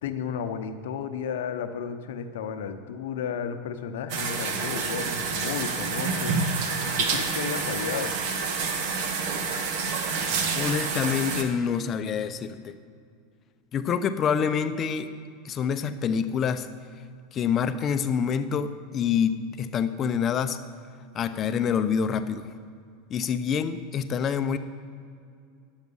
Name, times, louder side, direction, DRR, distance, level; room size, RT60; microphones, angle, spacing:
voice 1, 0.0-6.4 6.9-8.1, left 7 dB, 80° left, 8 dB, 0.7 m, -33 dB
sound 1, 4.1-11.4, right 5 dB, 65° right, 1.1 m, -28 dB
voice 2, 10.6-12.7 13.7-15.1 15.4-16.7 17.3-20.6 21.1-22.5 23.1-24.6, left 7 dB, 35° left, 10 dB, 0.5 m, -26 dB
10.5 x 7.2 x 5.4 m, 2.3 s
supercardioid pair, 125°, 0 cm